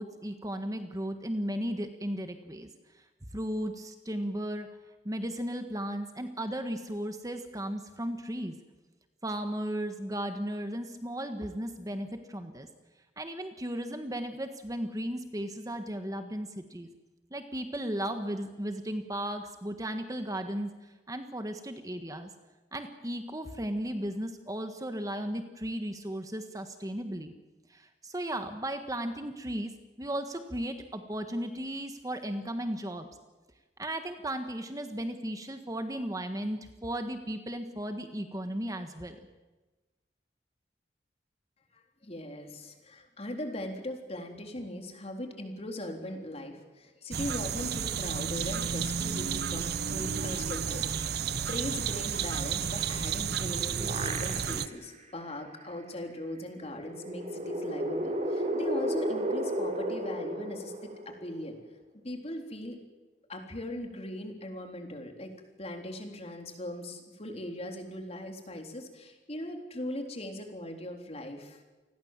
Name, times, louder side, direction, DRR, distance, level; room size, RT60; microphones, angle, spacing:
voice 1, 0.0-2.7 2.9-3.0 3.3-4.7 5.0-8.5 9.2-12.7 13.2-16.9 17.3-22.3 22.7-27.3 27.7-29.7 30.0-33.1 33.8-39.2, right 1 dB, 20° right, 7 dB, 1.5 m, -35 dB
voice 2, 41.7-61.6 62.0-62.8 63.3-65.3 65.6-71.6, left 1 dB, 35° left, 4 dB, 3.8 m, -39 dB
sound 1, 47.1-54.7, right 7 dB, 65° right, 0.8 m, -32 dB
sound 2, 53.3-54.8 55.3-55.4 56.7-61.5, right 1 dB, 40° right, 3.5 m, -33 dB
28.5 x 20.5 x 7.5 m, 1.2 s
head